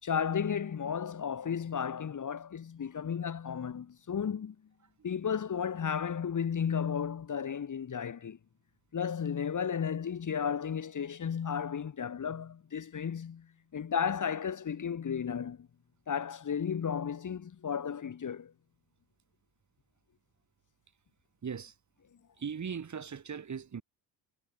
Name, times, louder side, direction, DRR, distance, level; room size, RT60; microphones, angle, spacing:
voice 1, 0.0-4.6 5.0-8.4 8.9-15.7 16.1-18.5, left 7 dB, 35° left, 2.6 m, -34 dB
voice 2, 21.4-21.7 22.4-23.8, right 6 dB, 35° right, 3.6 m, -38 dB
supercardioid pair, 85°, 49 cm